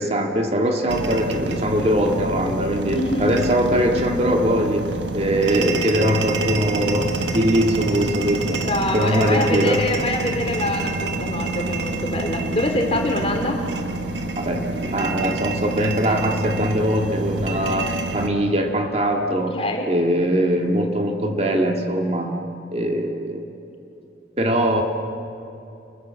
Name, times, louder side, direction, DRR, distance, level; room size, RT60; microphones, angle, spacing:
voice 1, 0.0-8.6 8.9-9.8 14.4-19.6 19.9-22.4 22.7-23.5 24.4-24.8, equal, 35° right, 3 dB, 1.9 m, -21 dB
sound 1, 0.9-18.3, right 2 dB, 85° right, 1.5 m, -27 dB
voice 2, 2.9-3.4 8.6-13.6 19.5-19.9, left 1 dB, 30° left, 3 dB, 3.2 m, -25 dB
29.0 x 21.0 x 7.5 m, 2.9 s
head